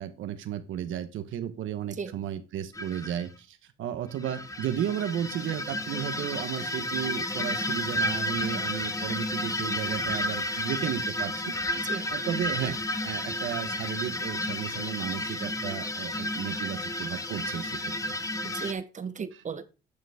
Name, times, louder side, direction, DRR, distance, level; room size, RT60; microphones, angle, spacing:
voice 1, 0.0-11.6 11.9-17.9, right 10 dB, 80° right, 10 dB, 1.1 m, -34 dB
sound 1, 2.7-3.2 4.1-18.7, left 1 dB, 15° left, 1.2 m, -32 dB
voice 2, 11.7-12.1 18.4-19.7, right 6 dB, 40° right, 13 dB, 1.0 m, -36 dB
10.0 x 6.9 x 3.5 m, 0.31 s
cardioid pair, 90°, 20 cm